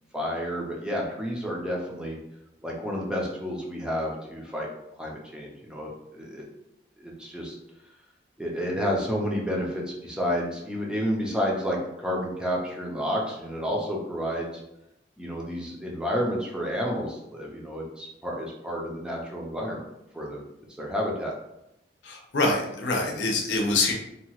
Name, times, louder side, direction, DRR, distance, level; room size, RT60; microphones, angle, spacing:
voice 1, 0.1-2.2 2.6-4.7 5.0-6.4 7.0-7.6 8.4-14.6 15.2-19.9 20.1-20.4 20.8-21.4, equal, 5° right, -2 dB, 0.4 m, -30 dB
voice 2, 22.0-23.9, left 2 dB, 85° left, 0 dB, 0.6 m, -25 dB
2.8 x 2.3 x 2.9 m, 0.86 s
head